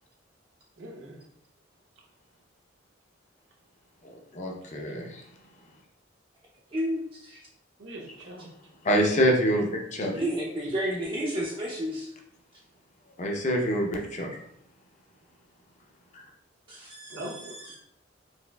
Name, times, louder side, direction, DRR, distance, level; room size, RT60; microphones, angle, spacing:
voice 1, 0.8-1.2 7.8-8.5 17.1-17.8, right 1 dB, 75° right, -2 dB, 0.8 m, -41 dB
voice 2, 4.3-5.2 8.8-10.2 13.2-14.3, equal, 40° left, 1 dB, 0.5 m, -25 dB
voice 3, 6.7-7.4 10.1-12.1 16.7-17.8, equal, 25° right, -4 dB, 0.4 m, -32 dB
4.1 x 2.4 x 2.2 m, 0.73 s
head